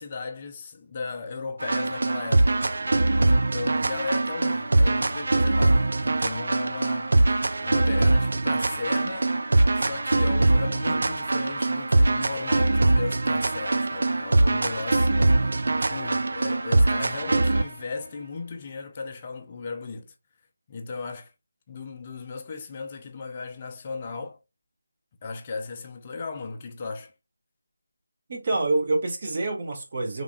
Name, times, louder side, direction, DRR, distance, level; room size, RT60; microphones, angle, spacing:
voice 1, 0.0-2.6 3.2-9.3 9.7-20.1 20.7-21.3 21.7-24.4 25.2-27.1, left 4 dB, 25° left, 0.6 m, -36 dB
sound 1, 1.6-17.7, right 2 dB, 60° right, 0.5 m, -22 dB
voice 2, 28.3-30.2, right 2 dB, 40° right, 1.5 m, -27 dB
3.7 x 3.4 x 2.3 m
figure-of-eight pair, 160°, 0 cm